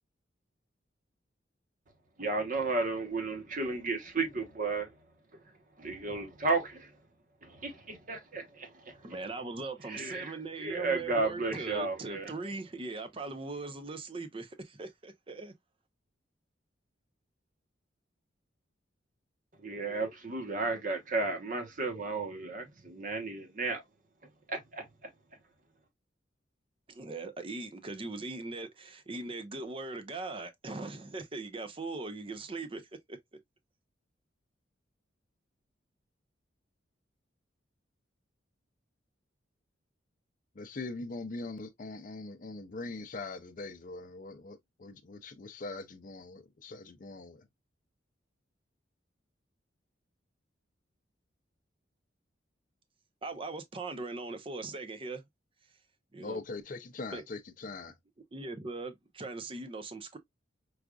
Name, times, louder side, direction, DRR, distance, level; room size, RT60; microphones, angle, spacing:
voice 1, 2.2-4.9 5.8-6.9 7.4-9.0 9.9-12.3 19.6-23.8 24.5-25.1, right 3 dB, 45° right, 1.0 m, -33 dB
voice 2, 9.0-15.5 26.9-32.8 33.1-33.2 53.2-55.2 56.1-56.4 57.1-57.2 58.3-60.2, right 3 dB, 30° right, 0.6 m, -40 dB
voice 3, 40.6-47.5 56.2-57.9, left 3 dB, 45° left, 0.5 m, -42 dB
4.7 x 2.5 x 2.3 m
head